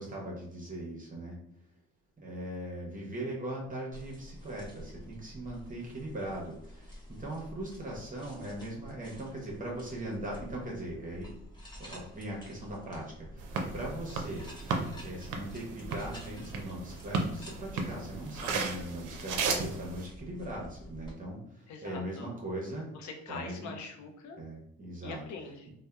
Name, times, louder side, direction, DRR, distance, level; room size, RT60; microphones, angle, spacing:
voice 1, 0.0-1.3 2.2-11.3 11.8-14.4 15.0-22.9 23.3-23.7 24.4-25.2, right 1 dB, 25° right, -2 dB, 0.7 m, -40 dB
sound 1, 3.9-21.1, equal, 15° left, 0.8 m, -50 dB
sound 2, 13.4-20.0, right 4 dB, 85° right, 0.5 m, -35 dB
voice 2, 21.7-22.3 22.9-24.4 25.0-25.7, left 4 dB, 70° left, 3 dB, 0.5 m, -43 dB
2.7 x 2.1 x 2.2 m, 0.77 s
cardioid pair, 90°, 30 cm